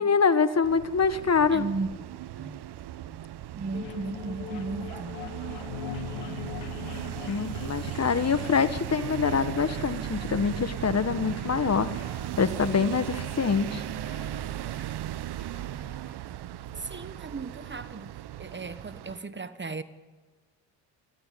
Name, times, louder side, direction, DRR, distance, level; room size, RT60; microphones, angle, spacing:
voice 1, 0.0-1.6 7.3-11.9 12.4-13.8, left 5 dB, 35° left, 12 dB, 1.6 m, -25 dB
sound 1, 0.6-19.2, right 12 dB, 55° right, 1.0 m, -37 dB
voice 2, 1.5-1.9 2.4-2.6 3.5-5.2 16.8-18.1 18.4-19.8, right 4 dB, 25° right, 12 dB, 1.4 m, -35 dB
sound 2, 3.7-16.2, left 13 dB, 90° left, 1.4 m, -44 dB
27.5 x 13.0 x 9.3 m, 1.3 s
supercardioid pair, 65°, 46 cm